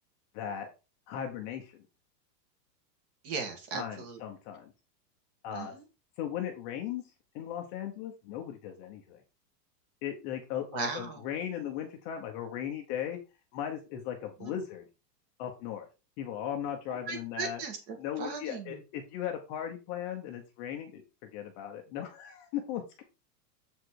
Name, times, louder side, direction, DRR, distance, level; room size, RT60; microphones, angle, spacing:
voice 1, 0.3-0.7 1.1-1.8 3.7-4.7 5.4-5.7 6.2-7.0 7.3-9.2 10.0-13.2 13.5-14.8 15.4-15.9 16.2-17.6 18.0-23.0, left 10 dB, 25° left, 3 dB, 0.9 m, -37 dB
voice 2, 3.2-4.2 5.5-5.8 10.7-11.2 14.4-14.5 17.1-18.8, right 4 dB, 35° right, 5 dB, 2.1 m, -37 dB
7.5 x 5.0 x 4.7 m, 0.29 s
supercardioid pair, 170°, 49 cm